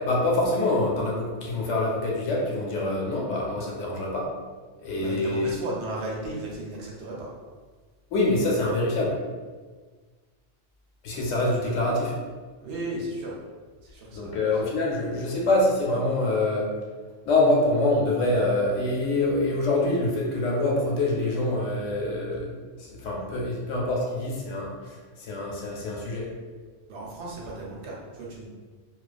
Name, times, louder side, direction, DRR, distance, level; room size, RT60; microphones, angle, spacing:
voice 1, 0.0-4.3 4.8-5.5 8.1-9.1 11.0-12.1 14.1-16.7 17.2-26.3, left 2 dB, 85° left, -2 dB, 1.0 m, -25 dB
voice 2, 4.9-7.3 8.6-8.7 12.6-13.4 13.8-14.5 26.9-28.5, right 2 dB, 70° right, -4 dB, 0.9 m, -35 dB
2.4 x 2.2 x 2.4 m, 1.4 s
omnidirectional pair, 1.3 m